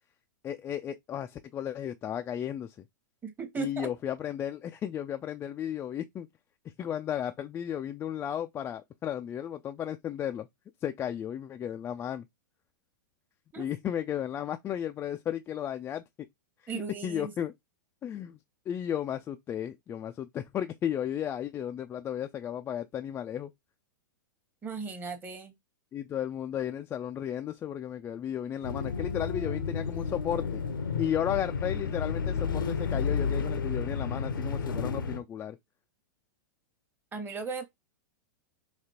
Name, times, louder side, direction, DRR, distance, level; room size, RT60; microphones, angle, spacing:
voice 1, 0.4-2.8 3.6-6.3 6.8-10.5 10.8-12.3 13.6-16.0 16.6-16.7 17.0-17.5 18.0-18.4 18.7-23.5 25.9-30.6 31.0-35.6, left 10 dB, 20° left, 0.3 m, -34 dB
voice 2, 3.2-3.9 13.5-13.7 16.7-17.3 24.6-25.5 37.1-37.7, right 5 dB, 15° right, 1.1 m, -37 dB
sound 1, 28.6-35.2, left 5 dB, 80° left, 0.7 m, -31 dB
5.0 x 2.8 x 2.8 m
hypercardioid pair, 105°, 11 cm